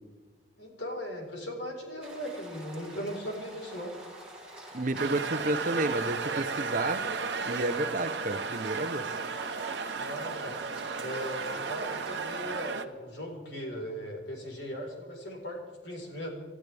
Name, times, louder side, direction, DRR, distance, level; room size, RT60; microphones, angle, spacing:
voice 1, 0.6-3.9 9.9-10.6 11.0-16.3, equal, 75° left, 0 dB, 4.5 m, -38 dB
sound 1, 2.0-12.2, right 1 dB, 5° right, 4.2 m, -47 dB
voice 2, 4.7-7.0 7.5-9.1, right 2 dB, 50° right, 9 dB, 0.9 m, -31 dB
sound 2, 4.9-12.8, right 5 dB, 75° right, 1.0 m, -34 dB
29.5 x 13.5 x 3.5 m, 1.4 s
head